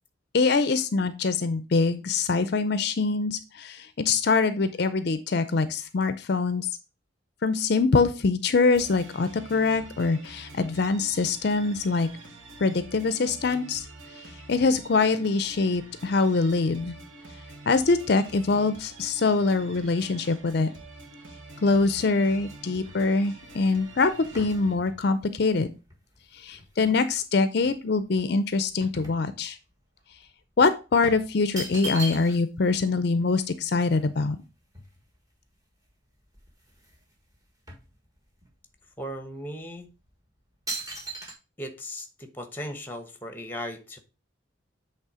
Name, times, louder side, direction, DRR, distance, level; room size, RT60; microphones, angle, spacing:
voice 1, 0.3-6.7 7.4-12.1 12.6-13.9 14.5-16.9 17.7-20.7 21.6-25.7 26.3-29.6 30.6-34.4, left 4 dB, 50° left, 0.5 m, -24 dB
sound 1, 8.7-24.7, right 2 dB, 80° right, 1.8 m, -46 dB
sound 2, 22.4-27.2 27.6-29.8 30.1-30.3 31.0-32.6 32.9-33.0 33.2-35.4 35.9-36.0 36.3-37.0 37.3-38.5 39.1-39.3 39.9-40.1 40.7-41.3, right 1 dB, 15° right, 1.4 m, -40 dB
voice 2, 39.0-39.9 41.6-44.0, equal, 10° left, 0.9 m, -37 dB
8.2 x 3.4 x 4.8 m
head